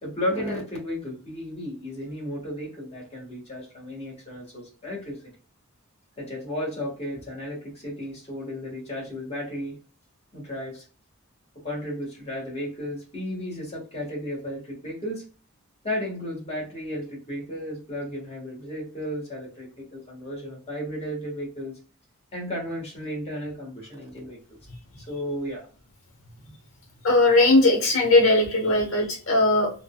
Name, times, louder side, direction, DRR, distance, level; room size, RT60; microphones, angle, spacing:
voice 1, 0.0-5.3 6.2-9.8 10.3-10.9 11.5-15.2 15.8-21.8 22.3-24.4 24.9-25.7, left 1 dB, 30° left, -3 dB, 1.3 m, -34 dB
voice 2, 27.0-29.7, left 2 dB, 65° left, 2 dB, 1.2 m, -19 dB
3.7 x 2.2 x 2.2 m, 0.37 s
head